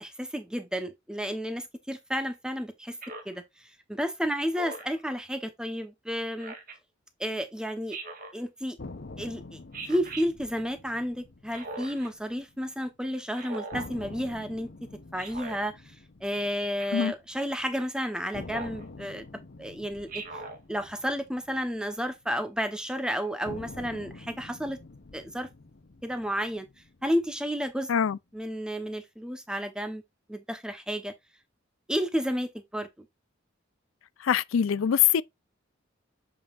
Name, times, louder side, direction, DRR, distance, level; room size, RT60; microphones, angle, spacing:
voice 1, 0.0-3.0 3.2-3.4 3.9-6.5 7.2-8.0 8.3-8.8 9.2-9.6 9.9-14.7 15.1-15.8 16.2-20.2 20.7-24.8 25.1-25.5 26.0-26.7 27.0-27.9 28.3-30.0 30.3-31.1 31.9-32.9, equal, 5° right, 1.0 m, -31 dB
Speech synthesizer, 3.0-3.4 4.5-5.0 6.4-6.8 7.9-8.4 9.7-10.3 11.5-12.1 13.3-13.9 15.2-15.6 16.8-17.1 18.5-18.8 20.1-20.6, right 3 dB, 45° right, 1.7 m, -40 dB
sound 1, 8.8-12.9 13.1-13.2 13.7-17.8 18.3-22.7 23.4-27.8, left 2 dB, 55° left, 0.9 m, -47 dB
voice 2, 34.2-35.2, left 8 dB, 75° left, 0.4 m, -23 dB
7.6 x 5.4 x 2.5 m
head